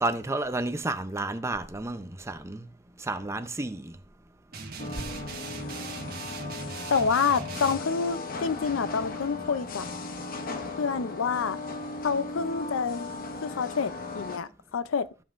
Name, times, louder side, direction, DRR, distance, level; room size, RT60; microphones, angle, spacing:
voice 1, 0.0-2.7 3.0-4.0 5.0-5.1, right 2 dB, 15° right, 0.6 m, -31 dB
sound 1, 4.5-7.8, right 4 dB, 50° right, 1.5 m, -39 dB
sound 2, 4.8-14.4, left 3 dB, 45° left, 0.8 m, -37 dB
voice 2, 6.9-9.9 10.8-11.6 12.0-13.1 13.4-15.1, left 5 dB, 85° left, 0.5 m, -28 dB
15.0 x 5.5 x 2.5 m
head